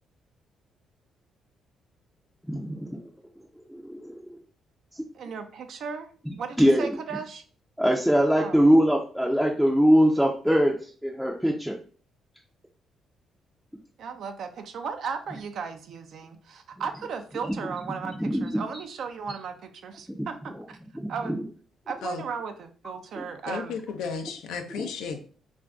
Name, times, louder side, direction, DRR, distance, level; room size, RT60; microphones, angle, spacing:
voice 1, 2.5-3.0 3.6-4.4 4.9-5.0 6.3-7.0 7.8-11.8 17.5-17.6 18.0-18.5 20.5-20.6 20.9-21.4 23.2-23.3 24.8-24.9, equal, ahead, -1 dB, 0.4 m, -23 dB
voice 2, 5.1-6.1 6.4-7.4 8.4-8.6 14.0-20.5 21.1-21.4 21.9-23.8, right 6 dB, 65° right, 7 dB, 0.4 m, -36 dB
voice 3, 23.4-25.2, left 5 dB, 85° left, 6 dB, 0.5 m, -34 dB
2.5 x 2.2 x 3.5 m, 0.42 s
cardioid pair, 90°, 0 cm